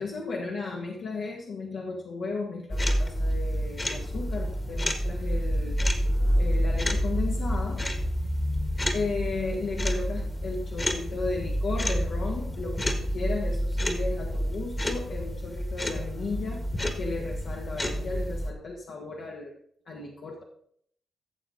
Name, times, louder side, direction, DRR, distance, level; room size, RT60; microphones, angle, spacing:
voice 1, 0.0-5.8 6.3-7.9 8.9-16.6 16.9-19.5 19.8-20.4, left 3 dB, 70° left, -2 dB, 1.8 m, -35 dB
sound 1, 2.7-18.5, equal, 20° left, 1.5 m, -28 dB
14.5 x 7.0 x 3.9 m, 0.66 s
cardioid pair, 90°, 0 cm